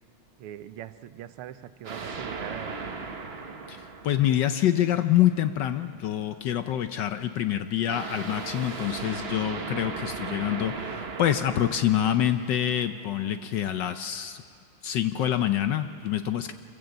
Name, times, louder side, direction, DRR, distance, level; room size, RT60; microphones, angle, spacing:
voice 1, 0.4-3.2, right 11 dB, 85° right, 13 dB, 1.6 m, -42 dB
sound 1, 1.8-5.0 7.9-13.1, right 4 dB, 40° right, 1.0 m, -37 dB
voice 2, 3.7-14.4 14.8-16.5, left 11 dB, 70° left, 9 dB, 1.1 m, -26 dB
26.0 x 16.0 x 7.8 m, 2.3 s
omnidirectional pair, 2.4 m